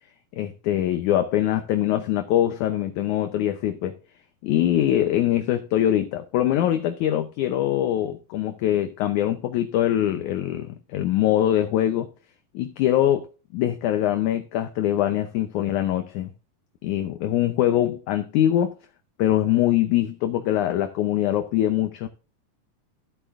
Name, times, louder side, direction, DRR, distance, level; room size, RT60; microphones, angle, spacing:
voice 1, 0.3-4.0 4.4-12.1 12.5-13.3 13.5-16.3 16.8-18.7 19.2-22.1, left 12 dB, 75° left, 2.0 m, -23 dB
14.0 x 8.1 x 2.5 m
omnidirectional pair, 4.0 m